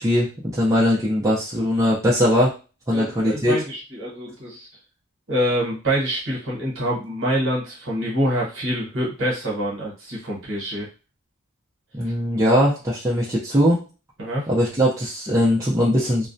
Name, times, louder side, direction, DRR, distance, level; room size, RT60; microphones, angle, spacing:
voice 1, 0.0-2.5 2.9-3.6 11.9-13.8 14.5-16.3, equal, 15° right, -6 dB, 0.5 m, -20 dB
voice 2, 2.9-4.7 5.3-10.9 14.2-14.5, equal, 60° right, -3 dB, 1.1 m, -26 dB
2.2 x 2.1 x 2.6 m, 0.33 s
head